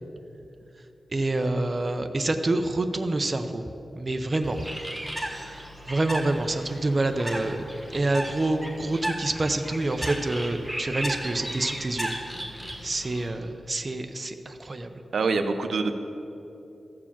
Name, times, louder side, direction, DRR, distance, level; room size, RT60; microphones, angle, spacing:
voice 1, 1.1-3.6 4.0-4.6 4.9-7.6 7.9-12.1 12.8-14.9, right 2 dB, 35° right, 7 dB, 0.6 m, -27 dB
Bird, 4.4-13.3, equal, ahead, 1.4 m, -35 dB
voice 2, 15.1-16.0, right 4 dB, 80° right, 7 dB, 0.6 m, -25 dB
14.0 x 4.7 x 7.3 m, 2.9 s
wide cardioid pair, 95°, 0 cm